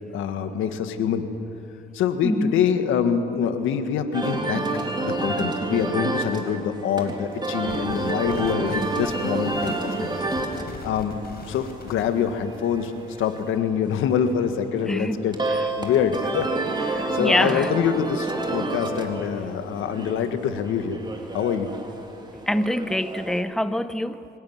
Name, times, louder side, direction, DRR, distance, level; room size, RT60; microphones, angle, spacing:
voice 1, 0.1-1.3 1.9-4.6 5.0-9.7 10.0-10.2 10.8-11.2 11.5-12.9 13.2-15.4 15.8-21.0 21.3-21.7, left 8 dB, 85° left, 8 dB, 1.7 m, -25 dB
voice 2, 2.2-2.7 14.8-15.2 15.5-15.6 16.9-17.7 22.5-24.3, left 1 dB, ahead, 12 dB, 0.9 m, -25 dB
sound 1, 4.1-23.4, right 2 dB, 20° right, 3.7 m, -30 dB
sound 2, 7.6-13.6, left 4 dB, 50° left, 4.3 m, -41 dB
25.0 x 17.0 x 9.5 m, 2.8 s
cardioid pair, 90°, 20 cm